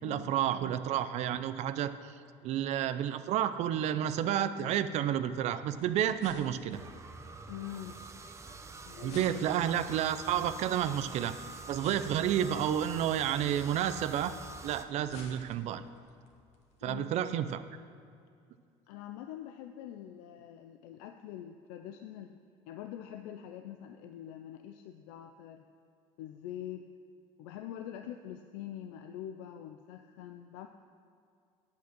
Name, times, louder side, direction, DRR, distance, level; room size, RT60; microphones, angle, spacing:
voice 1, 0.0-2.2 2.4-6.8 9.0-11.4 11.7-14.3 14.6-15.8 16.8-17.6, right 10 dB, 60° right, 12 dB, 0.5 m, -30 dB
sound 1, 5.6-17.4, left 4 dB, 60° left, 1.4 m, -57 dB
sound 2, 6.7-14.8, right 3 dB, 20° right, 0.7 m, -46 dB
voice 2, 7.5-8.0 8.8-9.3 16.8-17.1 18.9-22.4 22.7-25.6 26.2-26.9 27.4-30.7, left 11 dB, 85° left, 7 dB, 0.5 m, -44 dB
8.5 x 8.4 x 6.1 m, 2.4 s
supercardioid pair, 110°, 13 cm